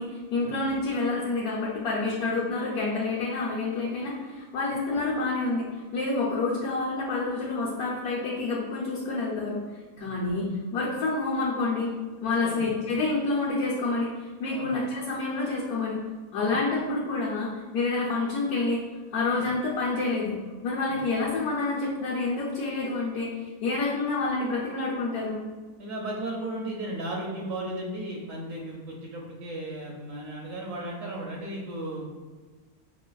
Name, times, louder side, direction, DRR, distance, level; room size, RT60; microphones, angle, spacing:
voice 1, 0.0-9.6 10.0-11.9 12.2-16.0 16.3-18.8 19.1-20.3 20.6-25.4, left 3 dB, 75° left, -7 dB, 1.2 m, -28 dB
voice 2, 25.8-32.0, right 1 dB, 70° right, -2 dB, 1.0 m, -35 dB
5.7 x 2.5 x 2.3 m, 1.3 s
omnidirectional pair, 1.6 m